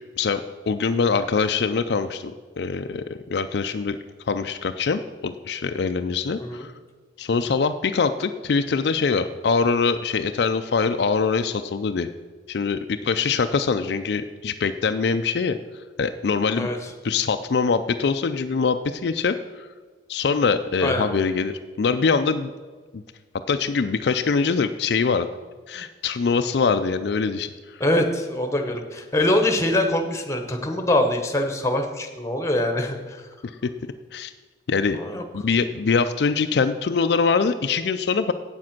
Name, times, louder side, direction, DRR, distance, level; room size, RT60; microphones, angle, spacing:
voice 1, 0.2-4.0 4.3-6.7 7.2-12.1 12.5-16.7 17.0-19.7 20.1-22.5 22.9-23.0 23.5-25.3 25.7-27.8 33.6-33.7 34.1-34.3 34.7-35.0 35.3-38.3, left 5 dB, 65° left, 8 dB, 0.4 m, -23 dB
voice 2, 16.6-16.9 20.8-21.1 27.8-33.2 35.0-35.2, left 1 dB, 15° left, 5 dB, 1.0 m, -23 dB
8.7 x 7.5 x 5.9 m, 1.4 s
head